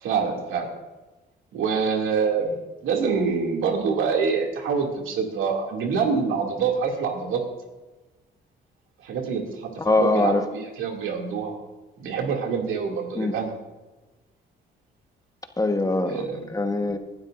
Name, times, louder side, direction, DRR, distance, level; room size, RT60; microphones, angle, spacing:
voice 1, 0.0-0.7 1.5-7.4 9.0-9.7 10.0-11.5 12.0-13.5 16.1-16.5, right 5 dB, 85° right, 1 dB, 2.5 m, -26 dB
voice 2, 9.8-10.5 13.1-13.3 15.6-17.0, left 2 dB, 20° left, 6 dB, 1.2 m, -23 dB
19.0 x 12.0 x 2.6 m, 1.1 s
cardioid pair, 90°, 20 cm